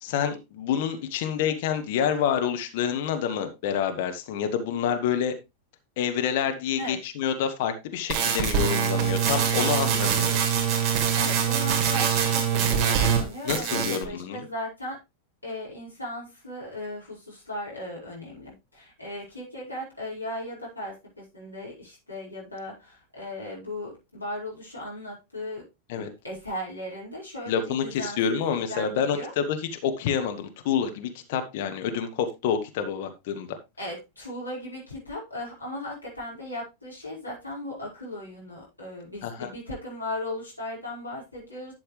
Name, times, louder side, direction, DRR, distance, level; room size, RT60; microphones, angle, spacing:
voice 1, 0.0-5.3 6.0-10.3 13.4-14.4 25.9-26.1 27.5-29.6 29.8-33.5 39.2-39.5, left 8 dB, 50° left, 6 dB, 1.6 m, -28 dB
sound 1, 8.1-13.2 13.5-14.0, right 8 dB, 35° right, 2.7 m, -24 dB
voice 2, 11.1-15.0 15.4-25.6 25.9-29.3 33.8-41.7, left 1 dB, 85° left, -6 dB, 5.3 m, -37 dB
11.5 x 7.1 x 3.3 m, 0.24 s
figure-of-eight pair, 90°, 0 cm